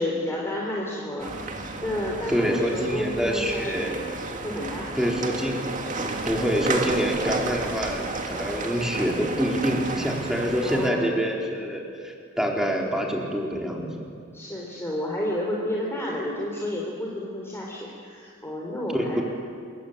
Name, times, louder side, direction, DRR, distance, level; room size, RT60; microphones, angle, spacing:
voice 1, 0.0-1.3 1.8-4.0 4.4-5.0 7.2-7.5 10.6-11.1 14.3-19.2, left 1 dB, 15° left, -3 dB, 3.6 m, -31 dB
sound 1, 1.2-10.9, right 3 dB, 40° right, 2.2 m, -32 dB
voice 2, 2.3-4.0 5.0-5.7 6.0-14.1 18.9-19.2, equal, 5° right, -1 dB, 4.4 m, -26 dB
27.5 x 23.5 x 9.0 m, 2.3 s
head